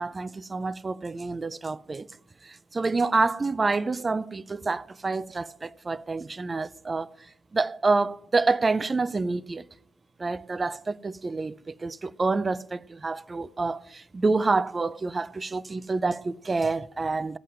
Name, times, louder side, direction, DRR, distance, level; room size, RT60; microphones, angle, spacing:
voice 1, 0.0-2.1 2.4-9.7 10.2-17.4, right 3 dB, 25° right, 0.4 m, -28 dB
16.0 x 5.6 x 9.8 m
cardioid pair, 90°, 0 cm